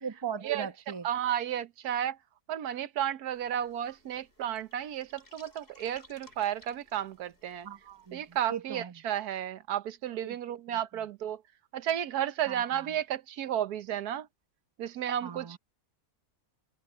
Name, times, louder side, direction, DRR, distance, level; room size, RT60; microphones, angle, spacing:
voice 1, 0.0-1.1 7.6-8.9 10.2-10.4 10.7-10.8 12.5-12.9 15.2-15.6, right 7 dB, 20° right, 0.8 m, -39 dB
voice 2, 1.0-2.2 2.5-7.7 8.1-11.4 11.7-14.3 14.8-15.6, right 10 dB, 85° right, 1.4 m, -33 dB
sound 1, 3.3-8.5, left 1 dB, 40° left, 4.9 m, -60 dB
open air
omnidirectional pair, 1.6 m